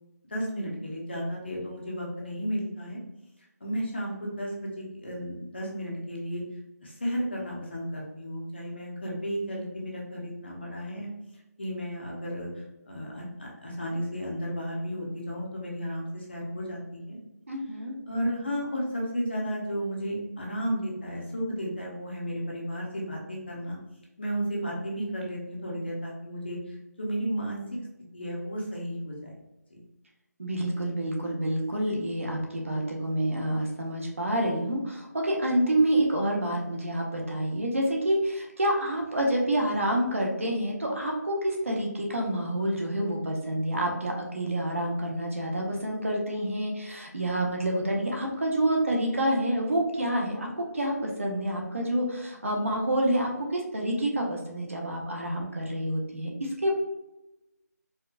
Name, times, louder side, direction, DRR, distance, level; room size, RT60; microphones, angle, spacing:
voice 1, 0.3-3.0 3.6-6.4 6.8-11.1 11.6-17.2 18.1-23.8 24.2-27.6 28.1-29.3 29.7-29.8, equal, 40° left, -3 dB, 0.8 m, -33 dB
voice 2, 17.5-17.9 30.4-56.7, right 1 dB, 50° right, 0 dB, 0.8 m, -28 dB
4.3 x 2.3 x 2.3 m, 0.95 s
figure-of-eight pair, 180°, 9 cm